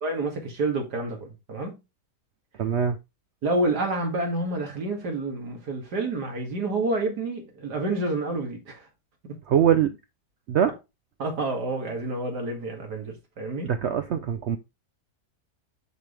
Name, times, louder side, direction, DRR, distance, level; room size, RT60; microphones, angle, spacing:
voice 1, 0.0-1.8 3.4-8.9 9.2-9.4 11.2-13.7, right 2 dB, 85° right, 2.6 m, -29 dB
voice 2, 2.6-3.0 9.5-10.0 10.5-10.7 13.6-14.6, right 9 dB, 70° right, 0.6 m, -22 dB
6.8 x 6.2 x 3.3 m
omnidirectional pair, 1.7 m